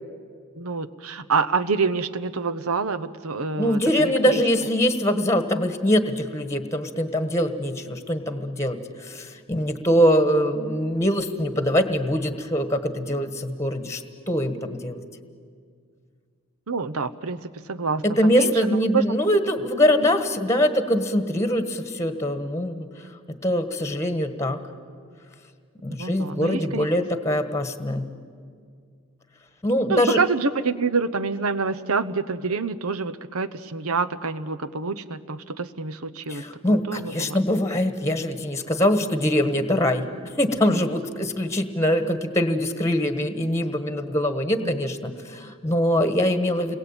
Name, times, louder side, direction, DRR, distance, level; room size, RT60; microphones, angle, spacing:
voice 1, 0.6-4.4 16.7-19.0 26.0-26.9 29.9-36.4 36.9-37.4 40.7-40.8 44.6-44.7, right 4 dB, 85° right, 12 dB, 1.0 m, -27 dB
voice 2, 3.6-14.0 14.3-15.0 18.0-22.9 23.3-24.6 25.8-28.1 29.6-30.2 36.3-40.1 40.4-46.8, equal, 15° left, 9 dB, 1.4 m, -23 dB
29.5 x 21.5 x 8.9 m, 2.1 s
head